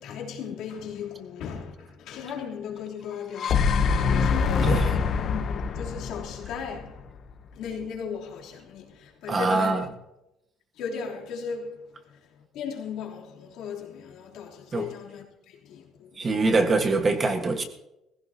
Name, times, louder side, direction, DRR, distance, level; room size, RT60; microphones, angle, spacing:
voice 1, 0.0-7.1 7.5-9.8 10.7-16.2, left 6 dB, 75° left, 3.2 m, -36 dB
sound 1, 3.1-7.3, left 5 dB, 40° left, 0.8 m, -25 dB
voice 2, 9.3-9.8 14.7-14.9 16.2-17.6, right 3 dB, 25° right, 1.4 m, -23 dB
19.5 x 16.0 x 2.8 m
cardioid pair, 175°, 0 cm